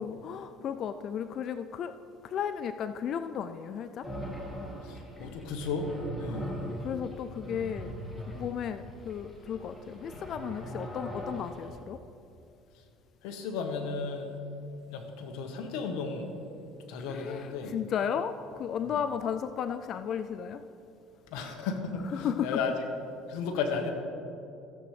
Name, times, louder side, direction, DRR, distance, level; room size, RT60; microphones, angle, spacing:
voice 1, 0.0-1.9 2.2-4.1 6.3-6.4 6.8-7.9 8.3-12.0 17.1-20.6 22.1-22.6, left 8 dB, 50° left, 10 dB, 0.3 m, -34 dB
sound 1, 4.0-11.8, equal, 10° left, 1.8 m, -41 dB
voice 2, 4.8-5.9 6.2-6.5 13.2-14.3 14.9-16.3 16.9-17.8 18.9-19.0 21.3-22.7 23.3-23.9, left 5 dB, 80° left, 4 dB, 1.3 m, -34 dB
15.0 x 7.8 x 3.3 m, 2.6 s
supercardioid pair, 110°, 0 cm